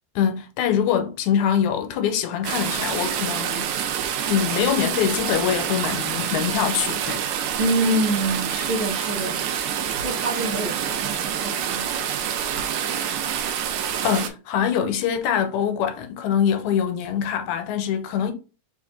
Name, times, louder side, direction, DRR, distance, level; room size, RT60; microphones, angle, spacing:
voice 1, 0.2-3.7 4.3-7.2 14.0-18.3, left 8 dB, 85° left, 2.0 m, -24 dB
sound 1, 2.4-14.3, right 9 dB, 85° right, 2.0 m, -27 dB
voice 2, 7.6-9.7 10.0-12.0, right 1 dB, 60° right, 1.4 m, -26 dB
4.9 x 2.5 x 4.3 m
omnidirectional pair, 3.3 m